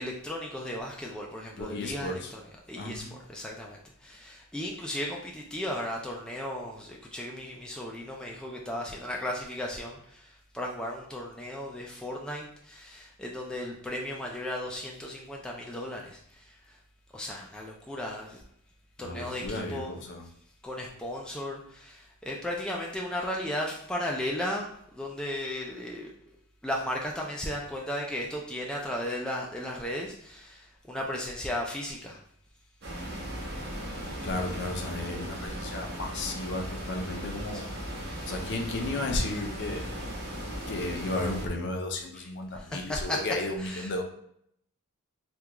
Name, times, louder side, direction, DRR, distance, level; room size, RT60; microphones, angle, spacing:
voice 1, 0.0-3.0 3.3-16.8 17.1-18.4 19.0-19.9 20.6-26.1 26.6-32.2 37.5-37.6 42.1-42.3 42.5-43.2 43.6-43.9, left 1 dB, 5° left, -2 dB, 0.3 m, -35 dB
voice 2, 1.6-2.3 2.8-3.2 19.0-20.2 34.2-37.7 38.3-39.9 40.7-44.0, left 2 dB, 55° left, 3 dB, 0.5 m, -33 dB
sound 1, 32.8-41.4, equal, 50° right, 0.9 m, -37 dB
3.4 x 2.3 x 2.9 m, 0.69 s
head